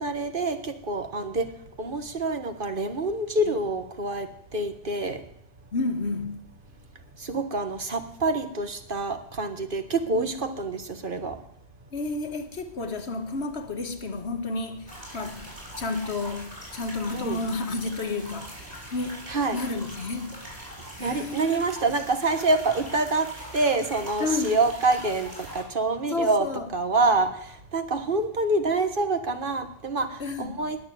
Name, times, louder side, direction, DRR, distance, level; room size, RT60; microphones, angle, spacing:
voice 1, 0.0-1.4 1.8-4.3 4.5-5.2 7.2-11.4 17.1-17.4 19.3-19.6 21.0-23.3 23.5-25.3 25.5-26.5 26.7-27.3 27.7-30.1 30.4-30.8, right 2 dB, 55° right, 1.6 m, -26 dB
voice 2, 5.7-6.4 10.1-10.6 11.9-15.4 15.8-20.4 21.0-21.6 24.2-24.6 26.1-26.7 30.2-30.7, left 3 dB, 80° left, 1.7 m, -31 dB
sound 1, 14.9-25.6, equal, 35° right, 6.5 m, -42 dB
19.0 x 7.1 x 9.3 m
omnidirectional pair, 1.1 m